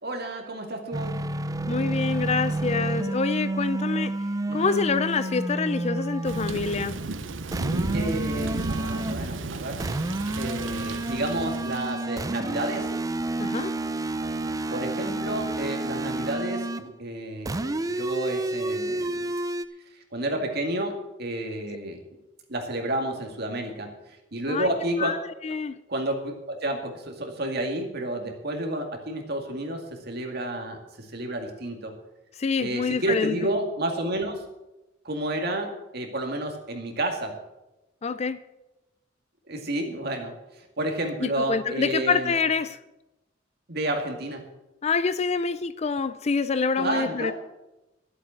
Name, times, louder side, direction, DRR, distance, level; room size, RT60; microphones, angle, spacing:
voice 1, 0.0-1.2 4.5-4.9 7.9-9.8 10.4-12.9 14.7-19.3 20.1-22.0 22.5-25.2 25.5-25.6 25.9-31.9 32.6-34.4 35.0-37.4 39.5-40.3 40.8-42.4 43.7-44.4 46.8-47.3, right 1 dB, 55° right, 3 dB, 2.1 m, -30 dB
sound 1, 0.9-6.6 7.5-9.2 9.8-16.9 17.4-19.6, right 2 dB, 20° right, 0.5 m, -30 dB
voice 2, 1.7-4.1 4.5-7.0 13.4-13.7 24.5-24.7 25.0-25.8 32.4-33.3 38.0-38.4 41.2-42.8 44.8-47.3, left 5 dB, 35° left, 14 dB, 0.4 m, -26 dB
Thunder / Rain, 6.2-12.0, right 3 dB, 90° right, 0.8 m, -33 dB
11.5 x 8.0 x 7.5 m, 0.97 s
head